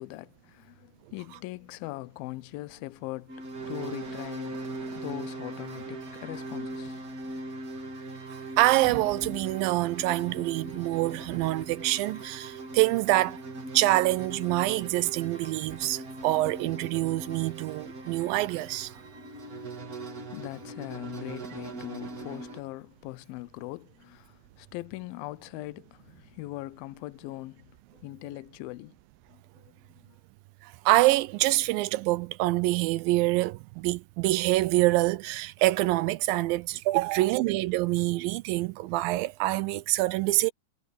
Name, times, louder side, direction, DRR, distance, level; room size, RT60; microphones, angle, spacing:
voice 1, 0.0-7.1 19.5-19.6 20.3-29.0 29.3-30.2, left 18 dB, 80° left, 2.4 m, -41 dB
sound 1, 3.3-22.6, right 2 dB, 35° right, 1.5 m, -40 dB
voice 2, 8.3-13.4 13.7-18.9 30.6-40.5, right 18 dB, 80° right, 2.2 m, -26 dB
omnidirectional pair, 4.4 m